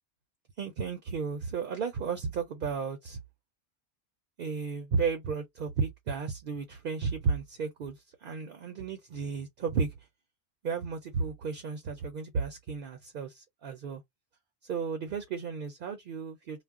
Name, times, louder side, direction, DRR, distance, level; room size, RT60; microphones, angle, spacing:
voice 1, 0.6-3.2 4.4-10.0 10.6-14.0 14.6-16.6, right 5 dB, 60° right, 0.7 m, -33 dB
2.4 x 2.0 x 3.4 m
omnidirectional pair, 1.2 m